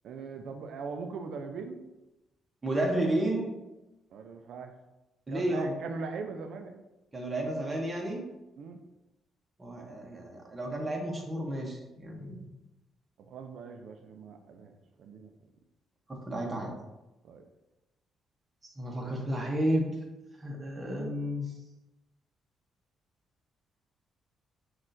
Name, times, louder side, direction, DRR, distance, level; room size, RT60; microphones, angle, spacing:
voice 1, 0.0-1.8 4.1-4.7 5.3-6.8 8.6-8.8 13.2-14.7 15.0-15.3 17.2-17.4, right 4 dB, 70° right, 6 dB, 0.4 m, -40 dB
voice 2, 2.6-3.5 5.3-5.7 7.1-8.3 9.6-12.5 16.3-16.7 18.8-19.9 20.4-21.5, right 1 dB, 20° right, -1 dB, 0.8 m, -31 dB
6.0 x 2.4 x 2.6 m, 1.0 s
cardioid pair, 90°, 0 cm